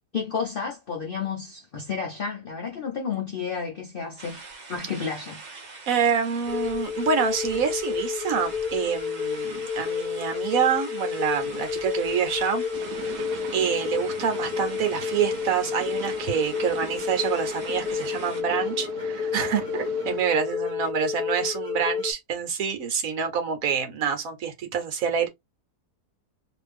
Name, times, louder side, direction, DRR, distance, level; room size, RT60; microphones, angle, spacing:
voice 1, 0.1-4.4 4.7-5.4, left 6 dB, 55° left, 0.6 m, -31 dB
sound 1, 4.2-18.4, right 3 dB, 40° right, 0.7 m, -43 dB
voice 2, 5.9-12.6 13.5-25.3, right 7 dB, 65° right, 1.2 m, -27 dB
sound 2, 6.5-22.1, left 7 dB, 85° left, 1.2 m, -30 dB
sound 3, 12.7-20.2, right 10 dB, 85° right, 1.1 m, -41 dB
2.9 x 2.6 x 3.4 m
omnidirectional pair, 1.6 m